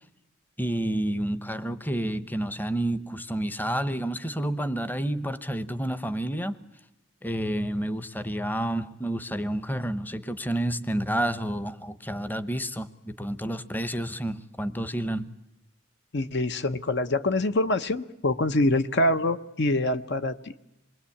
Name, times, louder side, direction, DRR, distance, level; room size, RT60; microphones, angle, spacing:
voice 1, 0.6-6.6 7.2-15.3, right 1 dB, 10° left, 0.9 m, -29 dB
voice 2, 16.1-20.6, left 2 dB, 55° left, 0.9 m, -25 dB
27.5 x 21.5 x 8.5 m
head